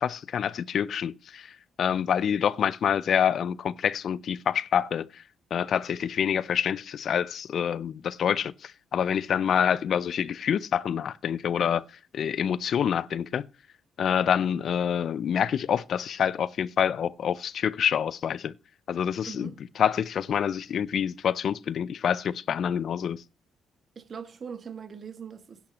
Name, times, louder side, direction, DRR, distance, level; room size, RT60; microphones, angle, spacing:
voice 1, 0.0-5.2 5.5-11.8 12.1-13.5 14.0-18.5 18.9-19.5 19.8-23.2, left 8 dB, 60° left, 0.4 m, -27 dB
voice 2, 19.3-19.6 23.9-25.6, right 6 dB, 45° right, 1.4 m, -41 dB
10.5 x 5.9 x 7.0 m
cardioid pair, 90°, 0 cm